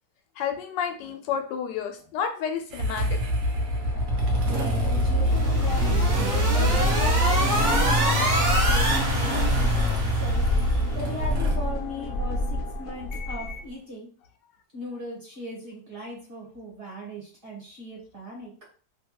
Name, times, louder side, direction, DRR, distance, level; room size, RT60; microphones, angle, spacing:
voice 1, 0.4-3.2 7.1-7.3, left 7 dB, 90° left, 5 dB, 1.2 m, -31 dB
Motorcycle / Engine starting, 2.7-11.6, equal, 65° right, 0.7 m, -25 dB
sound 1, 3.1-13.7, left 1 dB, 70° left, 0.8 m, -30 dB
voice 2, 4.5-6.8 7.4-10.5 10.9-14.1 14.7-18.5, left 1 dB, 40° right, -3 dB, 1.0 m, -38 dB
sound 2, 5.3-10.9, right 1 dB, 90° right, 0.4 m, -27 dB
2.9 x 2.3 x 2.8 m, 0.41 s
omnidirectional pair, 1.8 m